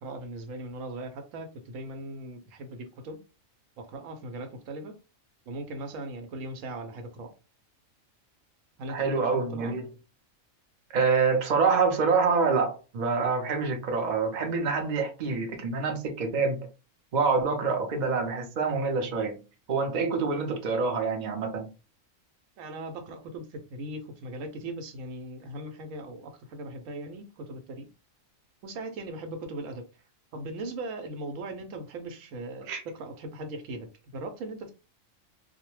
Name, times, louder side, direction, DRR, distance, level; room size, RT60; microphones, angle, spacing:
voice 1, 0.0-3.2 3.8-4.9 5.5-7.3 8.8-9.8 22.6-27.9 28.6-29.8 30.3-34.7, right 2 dB, 75° right, 0.9 m, -39 dB
voice 2, 8.9-9.8 10.9-16.7 17.1-19.4 19.7-21.7 32.7-32.8, right 4 dB, 50° right, 0.5 m, -26 dB
2.3 x 2.1 x 3.0 m
omnidirectional pair, 1.4 m